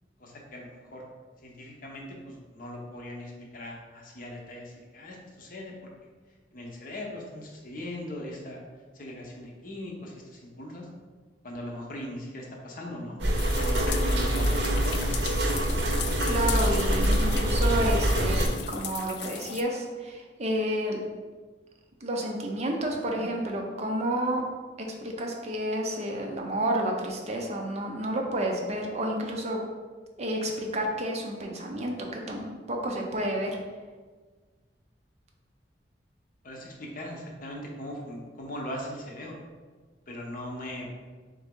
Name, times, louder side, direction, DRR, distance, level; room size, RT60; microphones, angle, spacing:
voice 1, 0.2-1.1 1.4-5.7 6.5-8.6 8.9-10.9 11.4-13.2 13.6-15.1 36.4-39.4 40.1-41.0, left 1 dB, 50° left, -1 dB, 0.8 m, -40 dB
sound 1, 13.2-18.5, right 1 dB, 80° right, 0.7 m, -25 dB
sound 2, 13.4-19.6, left 10 dB, 65° left, 0.3 m, -38 dB
voice 2, 16.2-21.0 22.0-24.4 24.8-29.6 30.2-33.6, right 1 dB, 40° right, 1 dB, 0.6 m, -30 dB
3.9 x 3.5 x 3.6 m, 1.4 s
head